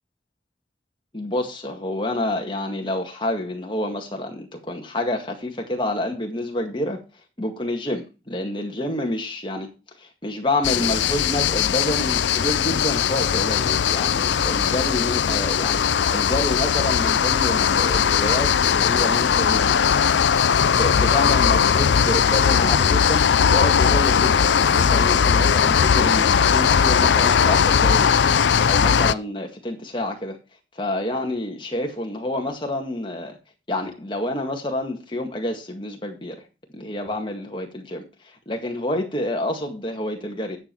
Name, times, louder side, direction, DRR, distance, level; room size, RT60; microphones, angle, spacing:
voice 1, 1.1-7.0 7.4-9.7 10.0-15.8 16.1-19.9 20.7-28.1 28.7-30.4 30.8-33.4 33.7-36.4 36.7-38.0 38.5-40.6, left 1 dB, 25° left, 2.0 m, -28 dB
sound 1, 10.6-29.1, left 7 dB, 75° left, 0.4 m, -19 dB
10.5 x 7.3 x 4.6 m
head